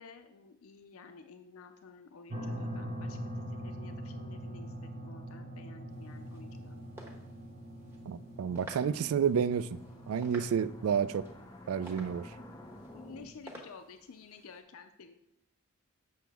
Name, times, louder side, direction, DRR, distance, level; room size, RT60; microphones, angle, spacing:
voice 1, 0.0-6.9 12.9-15.1, left 5 dB, 90° left, 7 dB, 0.5 m, -52 dB
sound 1, 2.3-11.5, equal, 40° right, 0.8 m, -43 dB
sound 2, 5.9-14.6, right 1 dB, 10° right, 1.1 m, -54 dB
voice 2, 8.1-9.8 10.1-11.2 11.7-12.3, right 7 dB, 90° right, 16 dB, 0.3 m, -30 dB
sound 3, 8.3-13.3, left 1 dB, 15° left, 0.5 m, -52 dB
7.6 x 6.2 x 3.5 m, 0.82 s
head